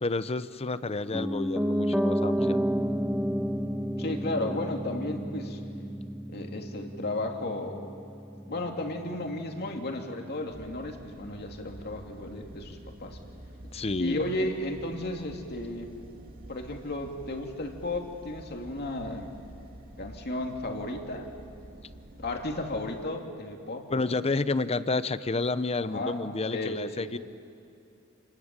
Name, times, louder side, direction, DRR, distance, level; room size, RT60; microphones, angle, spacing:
voice 1, 0.0-2.6 13.7-14.2 23.9-27.2, left 3 dB, 30° left, 14 dB, 0.7 m, -30 dB
Piano, 1.1-11.1 11.4-11.5, equal, 5° right, 1.1 m, -31 dB
voice 2, 4.0-5.6 6.3-7.8 8.5-13.2 14.0-15.9 16.5-19.3 20.0-21.3 22.2-24.2 25.8-26.2 26.5-27.1, left 2 dB, 50° left, 3 dB, 2.6 m, -34 dB
sound 1, 10.5-23.1, right 1 dB, 45° right, 2.3 m, -48 dB
29.0 x 20.5 x 9.0 m, 2.7 s
head